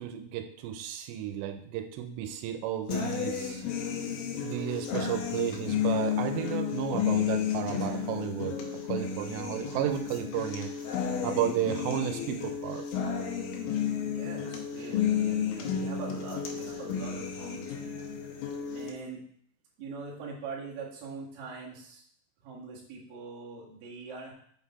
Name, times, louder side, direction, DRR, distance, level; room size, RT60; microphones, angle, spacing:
voice 1, 0.0-3.6 4.4-8.6 8.8-10.7 11.2-12.9, right 10 dB, 85° right, 6 dB, 2.8 m, -33 dB
sound 1, 2.9-18.9, left 8 dB, 80° left, 2.1 m, -32 dB
voice 2, 14.1-18.3 18.7-19.2 19.8-22.0 22.4-24.3, right 4 dB, 60° right, -5 dB, 1.6 m, -43 dB
6.3 x 4.0 x 4.1 m, 0.62 s
omnidirectional pair, 4.9 m